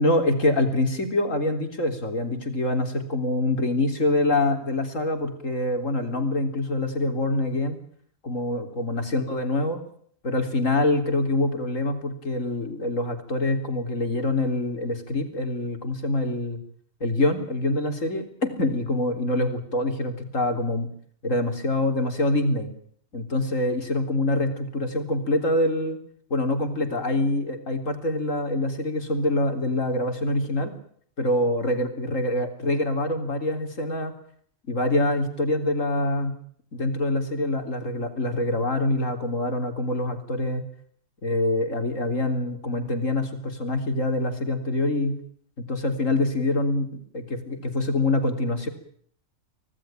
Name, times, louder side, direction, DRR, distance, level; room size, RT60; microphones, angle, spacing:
voice 1, 0.0-7.8 8.2-9.8 10.2-16.6 17.0-20.9 21.2-22.7 23.1-26.0 26.3-30.7 31.2-34.1 34.7-36.3 36.7-40.6 41.2-45.2 45.7-48.7, left 2 dB, 65° left, 6 dB, 4.0 m, -25 dB
25.5 x 18.0 x 9.0 m, 0.62 s
omnidirectional pair, 1.4 m